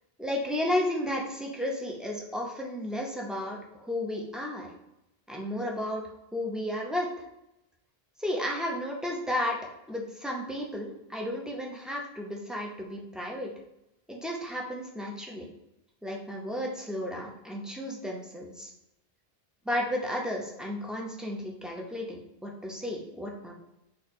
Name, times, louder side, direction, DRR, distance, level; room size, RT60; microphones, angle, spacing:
voice 1, 0.2-4.7 5.3-6.0 6.3-7.1 8.2-9.6 9.9-13.5 14.1-15.5 16.0-18.7 19.6-23.5, left 1 dB, ahead, -1 dB, 0.4 m, -33 dB
4.2 x 3.3 x 2.7 m, 0.87 s
omnidirectional pair, 1.1 m